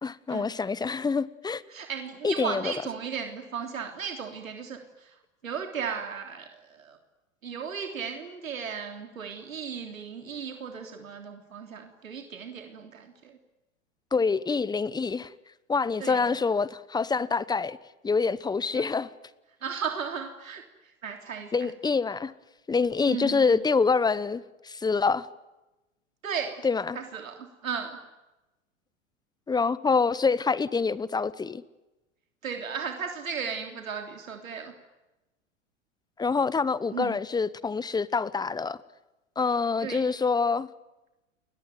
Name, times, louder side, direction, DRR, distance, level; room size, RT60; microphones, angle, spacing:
voice 1, 0.0-1.6 2.2-2.7 14.1-15.3 15.7-17.8 18.0-19.1 21.5-22.3 22.7-25.3 26.6-27.0 29.5-31.6 36.2-38.8 39.4-40.7, left 4 dB, 10° left, 19 dB, 1.0 m, -26 dB
voice 2, 1.7-5.2 5.4-7.0 7.4-13.4 16.0-16.4 18.7-18.9 19.6-21.7 23.1-23.6 26.2-26.6 27.0-28.0 32.4-34.7 36.9-37.2 39.8-40.1, right 6 dB, 80° right, 4 dB, 3.4 m, -36 dB
29.5 x 21.5 x 9.4 m, 1.0 s
hypercardioid pair, 105°, 40 cm